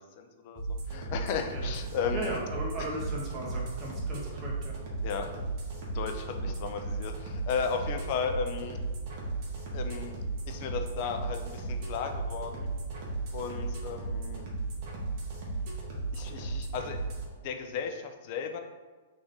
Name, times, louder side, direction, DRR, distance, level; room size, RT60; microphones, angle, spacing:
voice 1, 0.0-2.4 2.8-2.9 5.0-5.5 5.8-8.8 9.7-10.1 10.5-12.7 13.3-14.4 16.1-17.0 17.4-18.6, left 6 dB, 50° left, 6 dB, 0.5 m, -35 dB
sound 1, 0.6-17.3, right 3 dB, 45° right, 1.3 m, -35 dB
voice 2, 2.1-4.7, right 1 dB, 25° right, -4 dB, 1.2 m, -37 dB
3.6 x 3.3 x 3.9 m, 1.3 s
hypercardioid pair, 125°, 0 cm